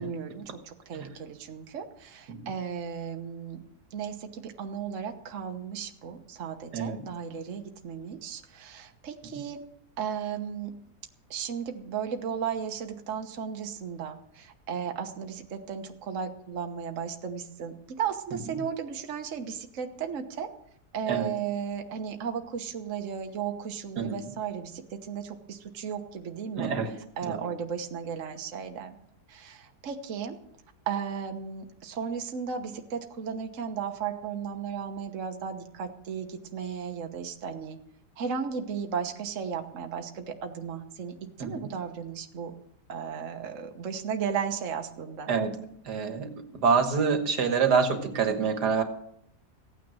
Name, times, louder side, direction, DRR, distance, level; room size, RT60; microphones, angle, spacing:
voice 1, 0.0-3.6 3.9-9.6 10.0-10.7 11.3-20.5 20.9-28.9 29.3-30.4 30.9-37.8 38.2-42.5 42.9-45.3, right 7 dB, 50° right, 5 dB, 1.4 m, -35 dB
voice 2, 26.6-26.9 27.3-27.4 41.4-41.6 45.3-45.5 45.9-48.8, right 5 dB, 75° right, 7 dB, 1.9 m, -26 dB
16.0 x 9.2 x 6.2 m, 0.71 s
omnidirectional pair, 1.8 m